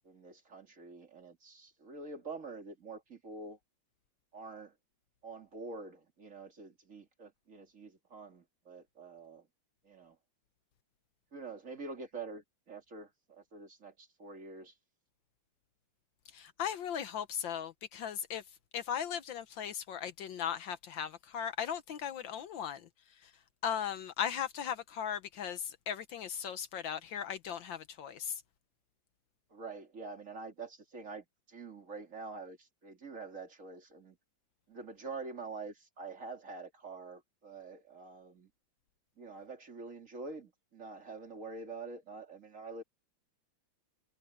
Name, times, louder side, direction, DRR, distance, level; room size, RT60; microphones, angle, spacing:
voice 1, 0.0-3.6 4.3-4.7 5.2-9.5 9.8-10.2 11.3-14.8 29.5-34.2 34.7-38.5 39.2-42.8, right 3 dB, 40° right, 3.2 m, -46 dB
voice 2, 16.3-18.4 18.7-22.8 23.6-28.3, left 8 dB, 75° left, 1.7 m, -37 dB
omnidirectional pair, 2.1 m